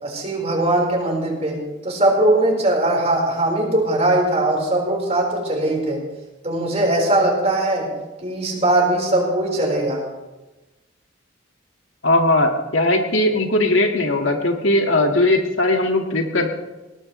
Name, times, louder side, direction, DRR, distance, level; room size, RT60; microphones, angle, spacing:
voice 1, 0.0-6.0 6.4-7.9 8.2-10.1, right 1 dB, 35° right, -1 dB, 4.8 m, -20 dB
voice 2, 12.0-16.5, left 2 dB, 85° left, 2 dB, 2.1 m, -19 dB
20.0 x 18.5 x 3.3 m, 1.1 s
head